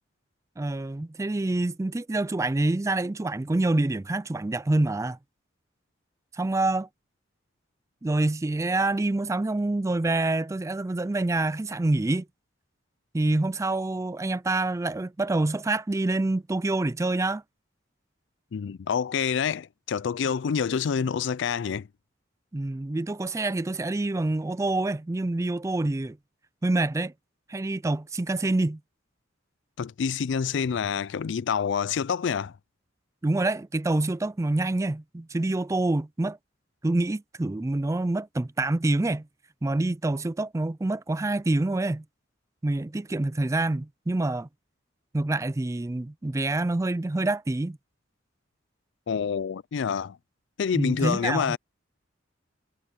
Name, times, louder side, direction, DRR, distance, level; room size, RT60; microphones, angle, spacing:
voice 1, 0.6-5.2 6.4-6.9 8.0-12.3 13.1-17.4 22.5-26.2 26.6-27.1 27.5-28.8 33.2-36.4 36.8-39.3 39.6-42.0 42.6-44.5 45.1-47.8 50.7-51.6, right 2 dB, 15° right, 0.4 m, -26 dB
voice 2, 18.5-21.9 29.8-32.6 49.1-50.2 50.6-51.6, left 6 dB, 65° left, 0.4 m, -27 dB
head